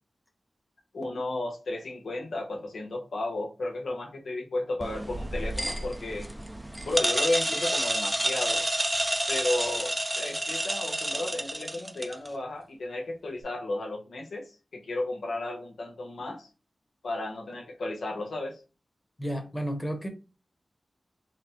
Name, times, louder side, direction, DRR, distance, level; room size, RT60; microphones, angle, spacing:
voice 1, 0.9-6.3 6.8-8.7 9.3-16.5 17.0-18.6, left 2 dB, 80° left, 1.0 m, -33 dB
sound 1, 4.8-12.3, right 1 dB, 15° right, 0.6 m, -29 dB
voice 2, 19.2-20.1, right 1 dB, 15° left, 1.1 m, -32 dB
4.2 x 2.1 x 4.2 m
cardioid pair, 60°, 0 cm